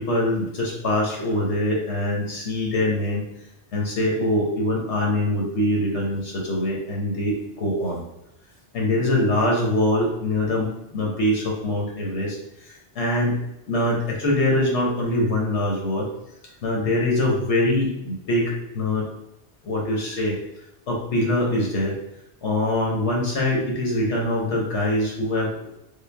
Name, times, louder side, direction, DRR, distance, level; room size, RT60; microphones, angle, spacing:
voice 1, 0.0-3.2 3.7-8.0 8.7-13.4 13.6-16.1 16.6-19.0 19.6-20.4 20.9-22.0 22.4-25.8, left 1 dB, 90° left, -2 dB, 1.3 m, -23 dB
3.7 x 2.1 x 3.3 m, 0.84 s
omnidirectional pair, 1.1 m